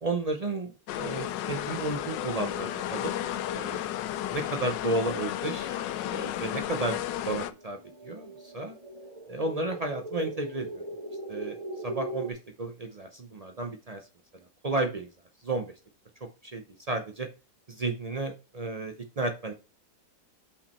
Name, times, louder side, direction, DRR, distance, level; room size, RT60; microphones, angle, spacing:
voice 1, 0.0-3.1 3.5-3.8 4.3-8.8 9.3-10.8 11.3-14.1 14.6-15.1 15.4-15.7 16.4-17.3 17.7-19.5, right 2 dB, 85° right, 5 dB, 0.3 m, -33 dB
sound 1, 0.9-7.5, left 12 dB, 85° left, 1.3 m, -33 dB
sound 2, 7.5-12.3, right 1 dB, 25° right, 1.0 m, -39 dB
5.9 x 4.9 x 4.3 m, 0.31 s
omnidirectional pair, 1.9 m